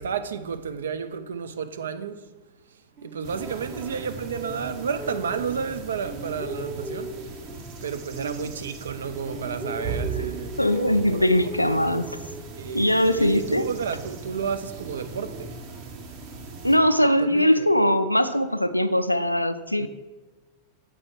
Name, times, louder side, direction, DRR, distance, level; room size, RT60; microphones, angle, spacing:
voice 1, 0.0-2.2 3.0-7.2 7.8-11.3 11.7-11.8 12.5-15.6 17.2-17.7 19.8-19.9, right 6 dB, 65° right, 0.5 m, -32 dB
sound 1, 3.0-5.7 6.0-9.0 9.2-12.8, right 2 dB, 15° right, 1.0 m, -39 dB
sound 2, 3.2-16.8, right 4 dB, 45° right, 1.2 m, -38 dB
voice 2, 10.6-12.2 12.7-13.7 16.6-19.9, left 1 dB, 90° left, 0.4 m, -21 dB
7.6 x 4.6 x 6.0 m
figure-of-eight pair, 90°, 0 cm